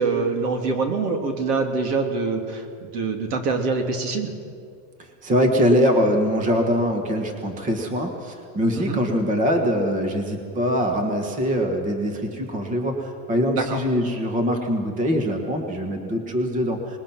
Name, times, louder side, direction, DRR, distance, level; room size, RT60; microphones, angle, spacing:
voice 1, 0.0-4.3 8.7-9.0 13.5-13.8, right 4 dB, 80° right, 4 dB, 3.2 m, -25 dB
voice 2, 5.2-17.0, equal, 15° right, 4 dB, 1.6 m, -23 dB
24.5 x 20.5 x 6.0 m, 2.3 s
supercardioid pair, 170°, 46 cm